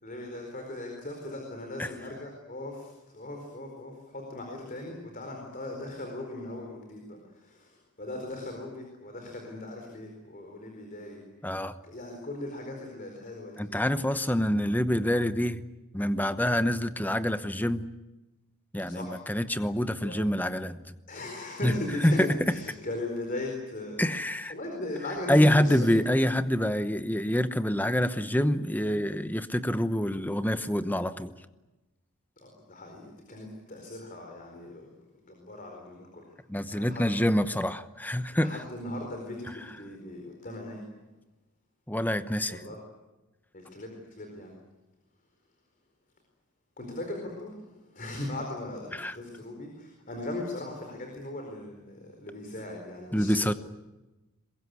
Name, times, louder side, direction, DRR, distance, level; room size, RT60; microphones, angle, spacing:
voice 1, 0.0-11.2 11.8-13.8 18.9-19.3 20.0-20.3 21.1-26.1 32.4-34.9 35.2-36.3 36.7-37.3 38.3-40.8 42.5-42.8 43.5-44.5 46.8-53.5, left 1 dB, 40° left, 2 dB, 4.5 m, -39 dB
voice 2, 11.4-11.8 13.6-15.6 15.9-17.9 18.7-20.8 21.6-21.7 22.0-22.3 24.0-24.5 25.3-31.3 36.5-38.6 41.9-42.6 48.9-49.2 53.1-53.5, equal, 10° left, 11 dB, 0.9 m, -26 dB
22.5 x 22.0 x 9.6 m, 1.1 s
head